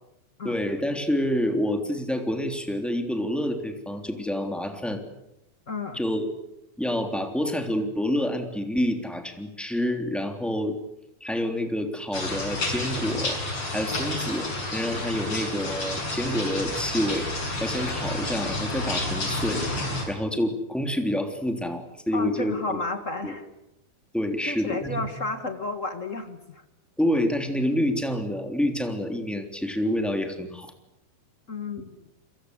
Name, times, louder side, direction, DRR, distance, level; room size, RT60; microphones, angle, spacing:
voice 1, 0.4-5.0 5.9-6.3 6.8-10.8 11.2-13.4 13.7-17.3 17.6-19.6 20.1-22.8 23.2-23.3 24.1-25.1 27.0-30.7, left 1 dB, ahead, 5 dB, 2.8 m, -28 dB
voice 2, 5.7-6.0 22.1-23.4 24.5-26.6 31.5-32.1, left 3 dB, 50° left, 8 dB, 0.8 m, -32 dB
sound 1, 12.1-20.0, left 2 dB, 35° left, 7.3 m, -30 dB
29.5 x 23.0 x 8.1 m, 0.86 s
omnidirectional pair, 4.2 m